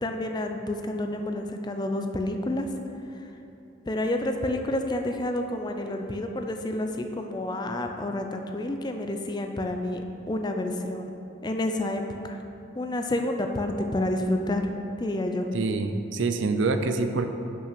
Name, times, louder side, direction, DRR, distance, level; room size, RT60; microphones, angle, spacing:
voice 1, 0.0-2.7 3.9-10.0 10.3-11.1 11.4-12.4 12.8-14.7 15.0-15.5, left 1 dB, 20° left, 4 dB, 0.4 m, -29 dB
voice 2, 15.5-17.3, right 3 dB, 70° right, 8 dB, 0.5 m, -26 dB
6.2 x 5.7 x 5.9 m, 2.9 s
head